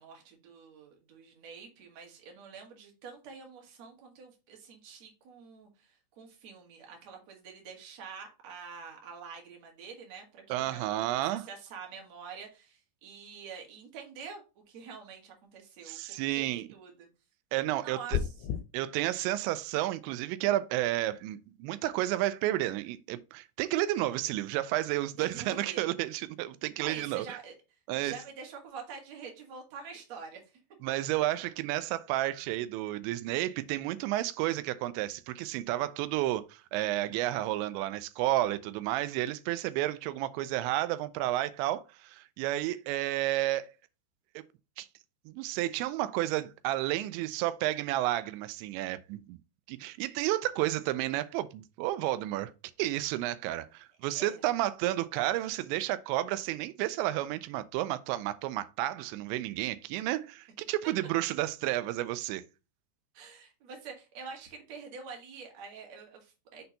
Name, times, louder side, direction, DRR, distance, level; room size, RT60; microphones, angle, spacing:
voice 1, 0.0-17.1 17.8-18.6 25.2-25.9 26.8-27.5 28.0-30.6 54.1-54.4 63.1-66.6, right 5 dB, 50° right, 2.3 m, -46 dB
voice 2, 10.5-11.4 15.9-16.7 17.5-18.0 18.7-27.4 27.9-28.2 30.8-43.7 44.8-44.9 45.3-49.4 49.7-52.5 52.8-62.4, right 15 dB, 90° right, 2.9 m, -31 dB
sound 1, 18.1-18.6, left 9 dB, 90° left, 2.9 m, -30 dB
6.6 x 4.3 x 4.0 m
omnidirectional pair, 5.1 m